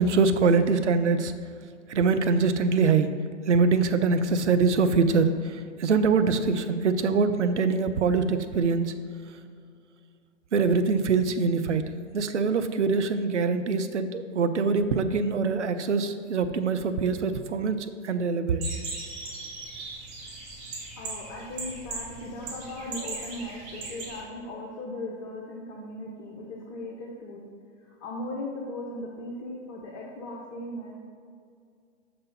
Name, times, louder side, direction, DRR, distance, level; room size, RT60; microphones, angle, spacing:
voice 1, 0.0-1.3 1.9-3.1 3.5-8.9 10.5-11.8 12.1-18.6, right 4 dB, 70° right, 9 dB, 0.6 m, -24 dB
sound 1, 18.6-24.2, right 3 dB, 35° right, 1.4 m, -38 dB
voice 2, 21.0-27.4 27.8-30.9, left 1 dB, 35° left, -2 dB, 1.0 m, -38 dB
6.5 x 5.9 x 4.0 m, 2.2 s
figure-of-eight pair, 105°, 37 cm